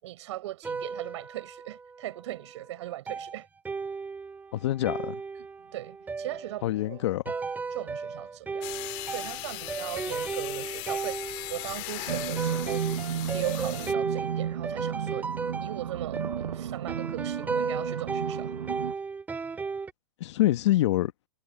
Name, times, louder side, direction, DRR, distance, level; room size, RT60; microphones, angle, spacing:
voice 1, 0.0-3.5 5.7-7.0 7.7-8.7 9.1-12.9 13.3-15.3 15.6-18.5, right 15 dB, 55° right, 7.0 m, -39 dB
sound 1, 0.6-2.2 3.1-19.9, right 4 dB, 10° right, 2.1 m, -35 dB
voice 2, 4.5-5.2 6.6-7.2 20.2-21.1, left 15 dB, 50° left, 1.4 m, -25 dB
sound 2, 8.6-13.9, left 24 dB, 35° left, 1.9 m, -38 dB
sound 3, 12.1-18.9, right 9 dB, 85° right, 0.8 m, -33 dB
hypercardioid pair, 145°, 18 cm